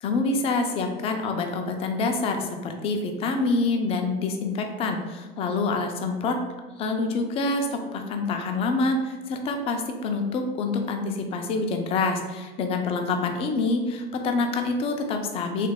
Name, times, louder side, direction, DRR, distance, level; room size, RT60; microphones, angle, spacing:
voice 1, 0.0-6.4 6.8-15.7, left 3 dB, 20° left, 4 dB, 0.4 m, -26 dB
3.2 x 3.2 x 3.5 m, 1.3 s
figure-of-eight pair, 85°, 30 cm